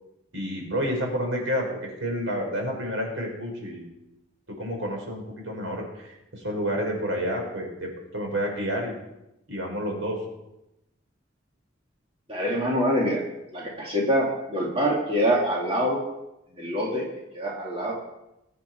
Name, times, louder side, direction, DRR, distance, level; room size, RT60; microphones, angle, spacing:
voice 1, 0.3-3.8 4.6-8.9 9.5-10.2, equal, 75° right, 1 dB, 4.8 m, -29 dB
voice 2, 12.3-13.2 13.5-16.0 16.5-17.1 17.3-17.9, equal, 25° right, -3 dB, 2.4 m, -25 dB
22.0 x 8.5 x 4.6 m, 0.89 s
head